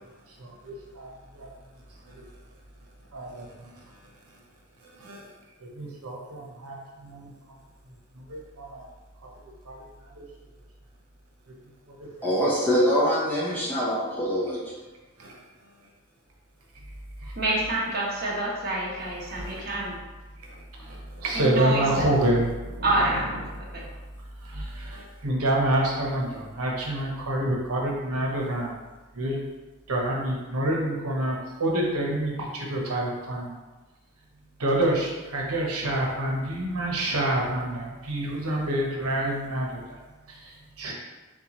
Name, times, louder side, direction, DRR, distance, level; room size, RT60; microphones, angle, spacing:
voice 1, 0.4-1.5 2.0-2.2 3.1-3.7 5.0-5.3 5.6-7.3 8.1-8.8 9.2-9.3 9.6-9.8 10.1-10.2 11.9-12.3 15.2-15.4 17.2-17.3 19.3-19.7 20.4-23.2 23.8-23.9 24.4-28.7 29.1-29.4 29.9-33.6 34.6-40.0 40.3-40.9, right 1 dB, 85° right, -1 dB, 0.9 m, -28 dB
voice 2, 12.2-14.6, equal, 10° left, -7 dB, 0.9 m, -24 dB
voice 3, 17.3-20.0 21.3-22.1 22.8-23.8, right 1 dB, 45° right, -4 dB, 1.1 m, -27 dB
4.4 x 3.8 x 3.0 m, 1.2 s
head